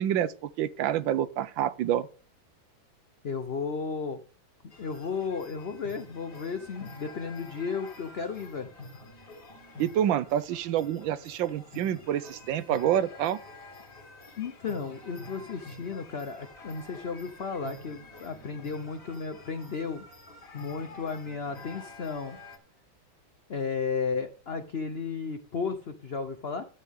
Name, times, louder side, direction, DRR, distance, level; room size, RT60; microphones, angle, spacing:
voice 1, 0.0-2.1 9.8-13.4, right 10 dB, 75° right, 1.4 m, -27 dB
voice 2, 3.2-4.2 4.8-8.7 14.4-20.1 20.5-22.4 23.5-26.6, left 5 dB, 90° left, 0.5 m, -34 dB
sound 1, 4.7-22.6, left 2 dB, 55° left, 2.7 m, -48 dB
11.5 x 8.3 x 3.6 m
omnidirectional pair, 2.2 m